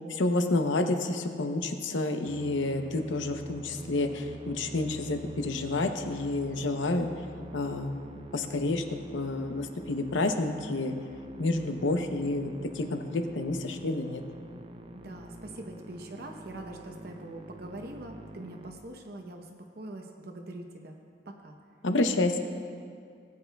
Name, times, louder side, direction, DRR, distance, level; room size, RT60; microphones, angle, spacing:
voice 1, 0.1-7.1 7.5-8.0 8.3-8.8 9.1-10.9 11.4-14.2 21.8-22.4, left 2 dB, 80° left, 6 dB, 0.7 m, -29 dB
Musical instrument, 2.2-19.4, right 2 dB, 30° right, 0.5 m, -46 dB
voice 2, 14.9-19.5 19.8-21.0 21.3-21.5, right 1 dB, 55° right, 2 dB, 0.8 m, -43 dB
19.0 x 8.7 x 2.3 m, 2.3 s
head